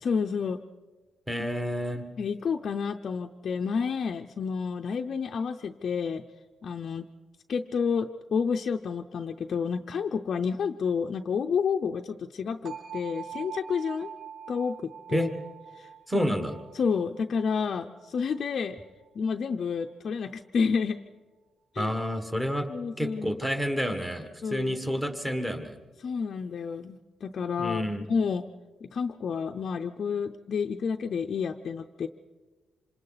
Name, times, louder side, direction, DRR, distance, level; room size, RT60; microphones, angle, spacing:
voice 1, 0.0-0.6 2.2-6.2 6.6-7.1 7.5-14.1 14.5-15.3 15.8-15.9 16.1-16.3 16.7-18.8 19.1-21.0 21.7-21.9 22.7-23.4 24.4-24.9 26.0-28.5 28.8-32.1, left 6 dB, 45° left, 3 dB, 0.6 m, -30 dB
voice 2, 1.3-2.0 15.1-15.3 16.1-16.5 21.8-22.7 23.0-25.8 27.6-28.1, equal, 10° right, 6 dB, 1.6 m, -29 dB
sound 1, 12.7-18.5, right 7 dB, 45° right, 5.1 m, -44 dB
27.0 x 26.5 x 4.1 m, 1.3 s
wide cardioid pair, 160°, 0 cm